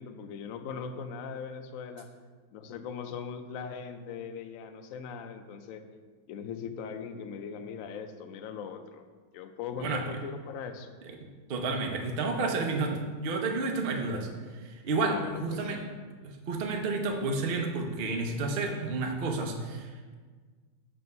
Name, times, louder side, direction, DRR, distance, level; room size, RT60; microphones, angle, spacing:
voice 1, 0.0-2.1 2.5-5.8 6.3-9.0 9.3-10.9 15.0-15.6, left 6 dB, 80° left, 7 dB, 0.7 m, -40 dB
voice 2, 11.1-14.3 14.5-15.2 15.4-15.8 16.2-20.1, right 3 dB, 60° right, 2 dB, 0.6 m, -31 dB
7.6 x 3.4 x 5.3 m, 1.5 s
omnidirectional pair, 2.0 m